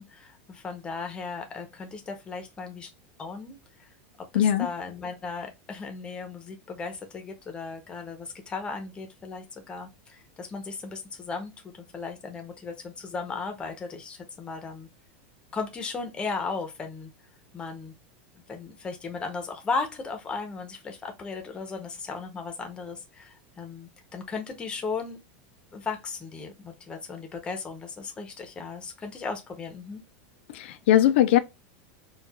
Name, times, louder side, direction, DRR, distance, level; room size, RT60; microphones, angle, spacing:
voice 1, 0.0-2.9 3.2-3.9 4.3-14.9 15.5-17.1 17.5-17.9 18.5-25.2 25.7-30.0, left 4 dB, 15° left, 0.7 m, -36 dB
voice 2, 4.3-4.7 30.5-31.4, left 11 dB, 70° left, 0.4 m, -20 dB
4.5 x 2.3 x 2.3 m
supercardioid pair, 160°, 6 cm